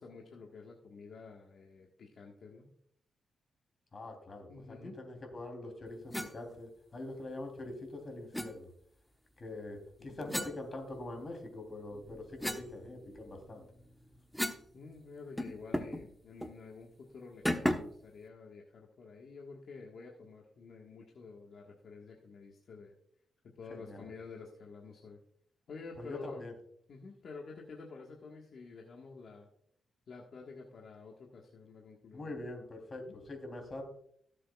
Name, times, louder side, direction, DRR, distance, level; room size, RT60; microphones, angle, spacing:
voice 1, 0.0-2.7 4.5-5.0 10.0-10.3 14.7-22.9 23.5-25.2 25.7-26.4 26.9-29.5 30.1-32.4 32.9-33.2, left 4 dB, 65° left, -1 dB, 1.6 m, -50 dB
voice 2, 3.9-4.6 4.9-8.7 9.4-13.7 23.7-24.1 26.0-26.5 32.1-33.8, left 2 dB, 40° left, 4 dB, 3.3 m, -44 dB
sound 1, 6.1-6.3 8.3-8.5 10.3-11.3 11.8-14.7 15.0-15.1 15.4-16.0 16.4-16.6 17.5-18.0, equal, 5° left, 1.1 m, -36 dB
17.5 x 7.5 x 2.4 m, 0.67 s
cardioid pair, 85°, 0 cm